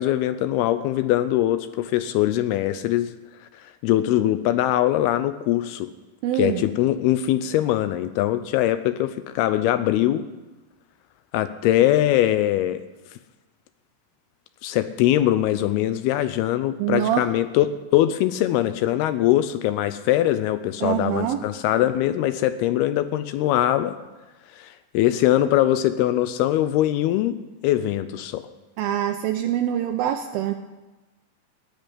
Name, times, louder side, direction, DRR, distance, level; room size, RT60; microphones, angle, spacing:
voice 1, 0.0-3.1 3.5-5.9 6.3-10.3 11.3-12.8 14.6-24.0 24.5-24.7 24.9-28.4, left 13 dB, 80° left, 12 dB, 2.4 m, -22 dB
voice 2, 6.2-6.6 16.8-17.3 20.8-21.4 28.8-30.5, right 11 dB, 80° right, 5 dB, 2.3 m, -24 dB
16.0 x 6.6 x 9.7 m, 1.1 s
omnidirectional pair, 4.7 m